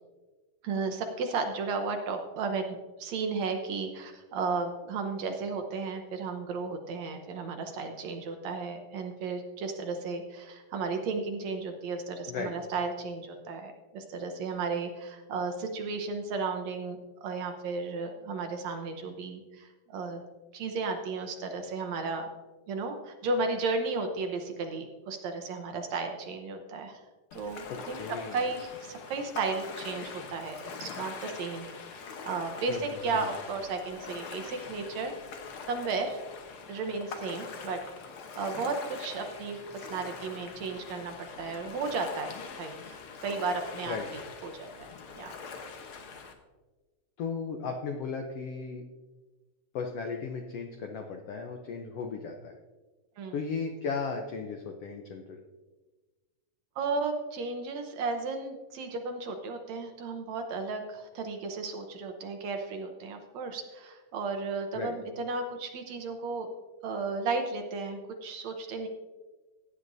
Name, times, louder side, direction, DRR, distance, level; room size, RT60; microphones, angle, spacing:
voice 1, 0.6-2.7 3.0-20.2 20.5-22.3 22.7-27.0 27.3-28.0 28.3-31.7 32.2-35.1 35.7-36.2 36.7-37.8 38.4-44.0 44.4-44.9 45.2-45.4 53.2-53.4 56.8-66.5 66.8-68.9, right 4 dB, 70° right, 5 dB, 1.9 m, -34 dB
Ocean, 27.3-46.3, left 5 dB, 70° left, 1.3 m, -43 dB
voice 2, 27.7-28.4 32.7-33.3 43.9-44.1 47.2-48.8 49.7-52.6 53.3-55.4 64.7-64.9, left 5 dB, 90° left, 4 dB, 1.3 m, -36 dB
16.5 x 9.9 x 2.7 m, 1.2 s
omnidirectional pair, 3.8 m